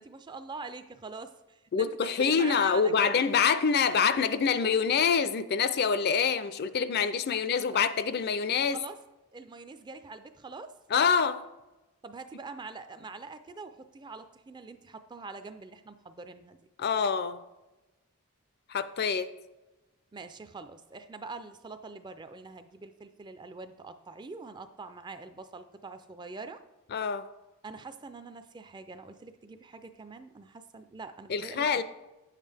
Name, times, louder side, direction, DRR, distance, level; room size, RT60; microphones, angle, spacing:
voice 1, 0.0-3.1 8.7-9.0 9.3-10.7 12.0-16.6 20.1-26.6 27.6-31.8, right 4 dB, 20° right, 10 dB, 0.3 m, -44 dB
voice 2, 1.7-8.8 10.9-11.4 16.8-17.4 18.7-19.3 26.9-27.2 31.3-31.8, left 6 dB, 45° left, 13 dB, 0.4 m, -26 dB
9.1 x 7.3 x 3.4 m, 1.0 s
head